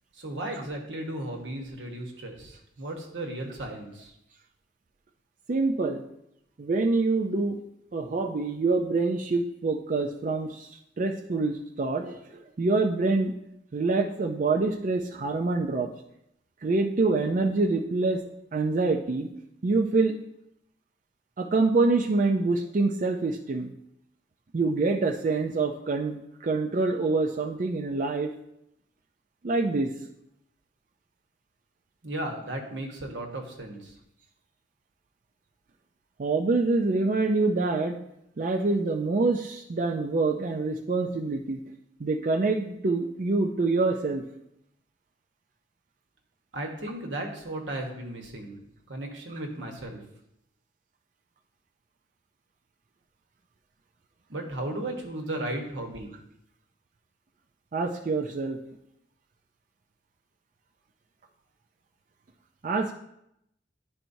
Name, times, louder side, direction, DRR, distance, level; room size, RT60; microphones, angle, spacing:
voice 1, 0.1-4.1 32.0-33.9 46.5-48.6 48.9-50.0 54.3-56.1, right 1 dB, 90° right, 2 dB, 1.2 m, -35 dB
voice 2, 5.5-6.0 6.6-7.6 7.9-10.7 11.0-13.3 13.7-15.9 16.6-18.2 18.5-19.3 19.6-20.1 21.4-23.7 24.5-28.3 29.4-29.9 36.2-38.0 38.4-41.6 42.0-44.2 57.7-58.6 62.6-62.9, right 3 dB, 45° right, 2 dB, 0.4 m, -26 dB
10.5 x 4.4 x 2.7 m, 0.80 s
head